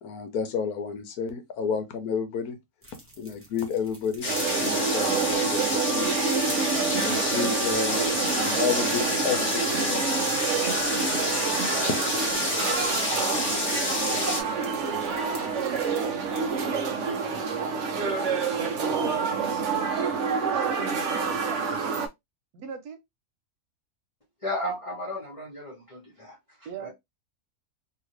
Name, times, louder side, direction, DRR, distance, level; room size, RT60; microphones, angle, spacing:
voice 1, 0.0-2.6 3.2-4.3 4.6-6.1 6.9-10.4 10.9-11.2, left 6 dB, 80° left, 1.2 m, -31 dB
sound 1, 2.8-16.6, right 1 dB, 10° right, 0.7 m, -48 dB
sound 2, 4.2-14.4, left 2 dB, 55° left, 1.3 m, -29 dB
sound 3, 4.3-22.1, right 5 dB, 60° right, 0.9 m, -27 dB
voice 2, 18.6-19.1 21.1-21.6 22.5-23.0 26.6-26.9, right 6 dB, 90° right, 1.3 m, -38 dB
voice 3, 24.4-26.9, left 1 dB, 25° left, 1.2 m, -34 dB
2.9 x 2.8 x 3.0 m
omnidirectional pair, 1.6 m